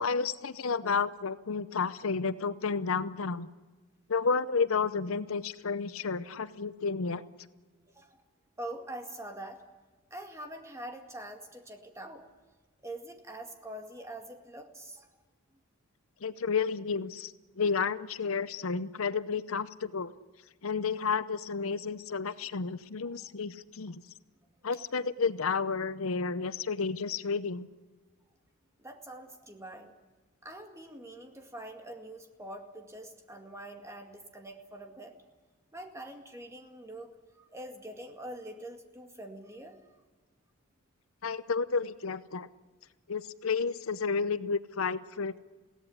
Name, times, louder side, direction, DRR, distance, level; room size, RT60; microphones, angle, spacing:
voice 1, 0.0-3.5 4.1-7.2 16.2-20.1 20.6-24.0 24.6-27.7 41.2-42.5 43.1-45.4, left 5 dB, 75° left, 15 dB, 0.7 m, -31 dB
voice 2, 7.9-8.2 8.6-9.6 10.1-12.3 12.8-15.1 23.1-23.2 28.8-29.9 30.4-35.2 35.7-37.1 37.3-39.8, right 1 dB, 15° right, 5 dB, 2.1 m, -44 dB
22.0 x 17.0 x 9.9 m, 1.3 s
head